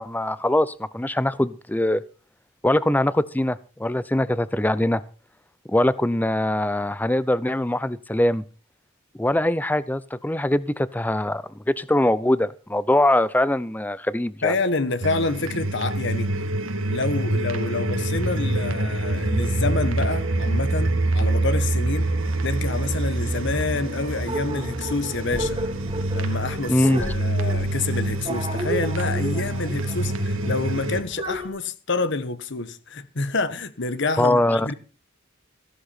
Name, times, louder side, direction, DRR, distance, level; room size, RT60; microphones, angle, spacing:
voice 1, 0.0-2.0 2.6-5.0 5.7-8.4 9.2-14.5 26.7-27.1 34.2-34.7, left 1 dB, 10° left, 0.6 m, -22 dB
voice 2, 14.4-16.3 16.9-22.1 22.4-25.6 26.1-34.7, left 3 dB, 60° left, 1.2 m, -28 dB
sound 1, 15.0-31.0, right 2 dB, 70° right, 1.7 m, -26 dB
sound 2, 24.3-31.5, right 1 dB, 25° right, 2.3 m, -33 dB
15.0 x 13.0 x 4.3 m
head